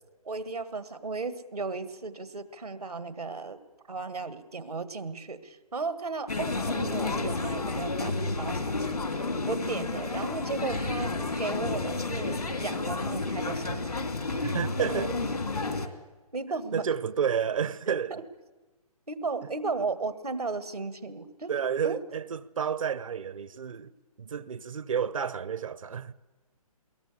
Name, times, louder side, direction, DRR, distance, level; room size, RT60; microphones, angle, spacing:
voice 1, 0.3-3.6 3.9-11.1 11.4-14.1 14.8-14.9 16.3-16.8 17.9-18.2 19.1-21.5 21.8-22.0, right 4 dB, 85° right, 1.9 m, -35 dB
sound 1, 6.3-15.9, left 3 dB, 85° left, 2.6 m, -31 dB
voice 2, 14.4-15.1 16.7-18.2 21.5-23.9 24.2-26.1, right 7 dB, 60° right, 0.9 m, -30 dB
22.0 x 17.5 x 8.3 m
figure-of-eight pair, 140°, 19 cm